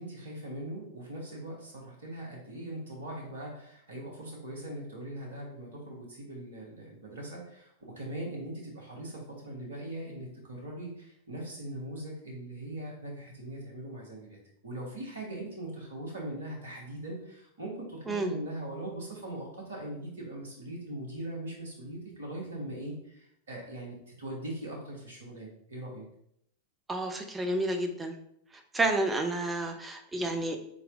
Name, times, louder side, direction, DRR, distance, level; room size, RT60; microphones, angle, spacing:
voice 1, 0.0-14.4 14.6-26.0, right 1 dB, 65° right, -1 dB, 1.3 m, -40 dB
voice 2, 26.9-28.2 28.7-30.6, right 2 dB, 10° right, 4 dB, 0.6 m, -30 dB
4.1 x 3.9 x 2.6 m, 0.72 s
figure-of-eight pair, 90°, 0 cm